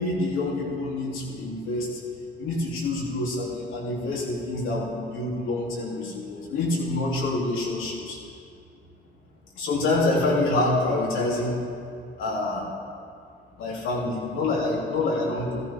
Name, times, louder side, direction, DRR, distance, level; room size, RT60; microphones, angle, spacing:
voice 1, 0.0-2.0 2.4-8.2 9.6-11.7 12.2-12.7 13.6-15.6, left 2 dB, 90° left, -5 dB, 3.3 m, -26 dB
14.5 x 14.5 x 3.7 m, 2.3 s
cardioid pair, 90°, 20 cm